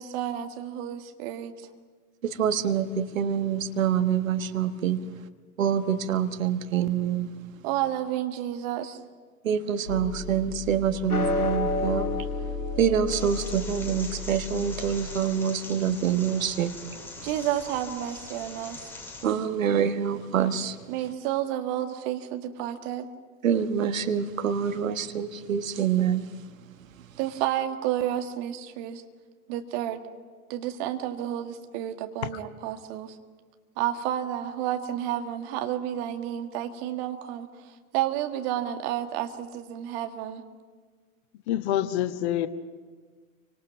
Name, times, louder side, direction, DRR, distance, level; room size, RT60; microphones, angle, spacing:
voice 1, 0.0-1.6 7.6-9.0 17.2-18.9 20.9-23.1 27.2-29.0 29.5-30.0 30.5-33.2 33.8-40.4, right 11 dB, 45° right, 2.0 m, -31 dB
voice 2, 2.2-5.0 5.6-7.3 9.4-12.3 12.8-16.7 19.2-20.8 23.4-26.3, right 8 dB, 65° right, 1.5 m, -26 dB
sound 1, 9.9-15.0, left 3 dB, 85° left, 1.3 m, -31 dB
sound 2, 13.1-19.2, left 3 dB, 5° left, 6.8 m, -42 dB
voice 3, 41.5-42.5, left 12 dB, 50° left, 1.3 m, -26 dB
29.0 x 25.0 x 6.1 m
figure-of-eight pair, 90°, 43 cm